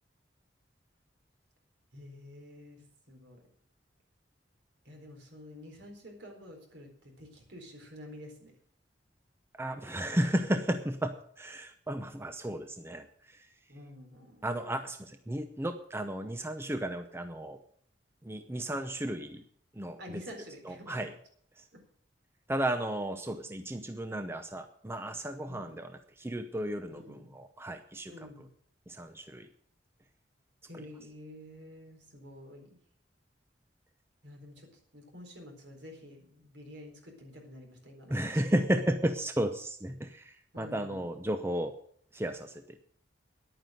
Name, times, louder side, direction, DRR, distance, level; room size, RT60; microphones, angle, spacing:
voice 1, 1.9-3.4 4.8-8.5 13.7-14.4 20.0-21.0 21.7-21.9 25.4-25.7 26.9-27.3 28.0-28.5 30.7-32.8 34.2-38.4 40.5-41.1, left 1 dB, 70° right, 2 dB, 4.2 m, -49 dB
voice 2, 9.5-13.5 14.4-17.6 18.2-19.4 19.7-20.2 20.6-21.1 21.6-21.7 22.5-28.5 28.9-29.5 38.1-41.8 42.1-42.8, right 1 dB, 15° right, 8 dB, 0.7 m, -34 dB
11.0 x 9.3 x 7.7 m, 0.62 s
head